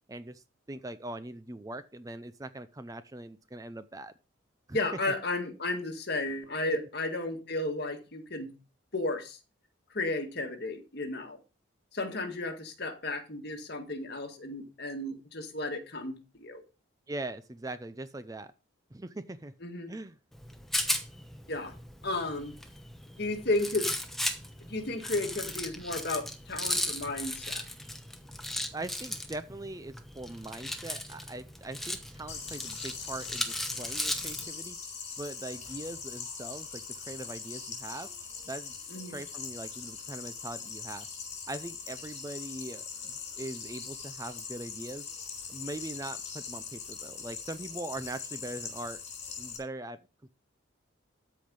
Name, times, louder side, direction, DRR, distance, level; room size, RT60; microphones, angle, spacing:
voice 1, 0.1-4.1 4.7-4.8 6.8-6.9 17.1-18.5 18.9-19.5 19.9-20.2 28.7-34.8 35.2-38.1 38.5-41.1 41.5-45.0 45.5-49.0 49.4-50.0, right 2 dB, 15° right, 0.5 m, -41 dB
voice 2, 4.7-8.5 8.9-9.4 9.9-11.4 11.9-16.6 19.6-19.9 21.5-21.8 22.0-22.6 23.2-24.0 24.6-27.6 38.9-39.2, left 2 dB, 50° left, 1.8 m, -33 dB
Rattle, 20.3-34.5, left 1 dB, ahead, 0.9 m, -36 dB
sound 1, 32.3-49.6, left 6 dB, 35° left, 3.8 m, -41 dB
13.5 x 5.1 x 5.3 m
head